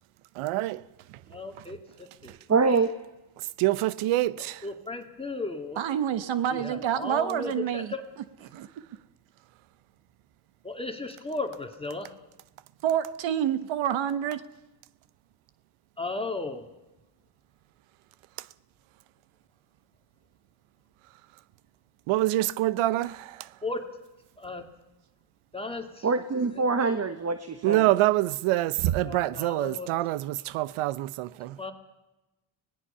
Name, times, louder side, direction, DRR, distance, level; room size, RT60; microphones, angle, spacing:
voice 1, 0.4-0.8 3.6-4.6 22.1-23.5 27.6-31.6, right 16 dB, 85° right, 0.8 m, -26 dB
voice 2, 1.3-2.4 4.4-5.8 6.5-8.1 10.6-12.1 16.0-16.7 23.6-24.0 24.4-24.7 25.5-26.1 29.0-29.9 31.6-31.7, left 3 dB, 10° left, 2.2 m, -35 dB
voice 3, 2.5-2.9 26.0-27.9, right 4 dB, 30° right, 1.3 m, -25 dB
voice 4, 5.8-7.9 8.5-8.7 12.8-14.4, right 9 dB, 65° right, 1.2 m, -27 dB
25.0 x 18.5 x 5.6 m
cardioid pair, 85°, 49 cm